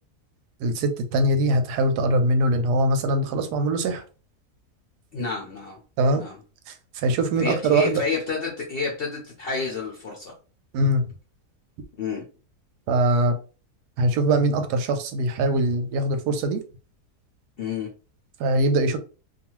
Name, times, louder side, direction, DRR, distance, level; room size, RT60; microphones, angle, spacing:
voice 1, 0.6-4.0 6.0-6.2 6.7-8.0 10.7-11.1 12.9-13.4 14.0-16.6 18.4-19.0, right 1 dB, 90° right, 7 dB, 1.2 m, -22 dB
voice 2, 5.1-5.8 6.1-6.4 7.4-10.3 12.0-12.3 17.6-17.9, left 4 dB, 60° left, -1 dB, 0.6 m, -29 dB
2.5 x 2.4 x 2.9 m, 0.34 s
omnidirectional pair, 1.7 m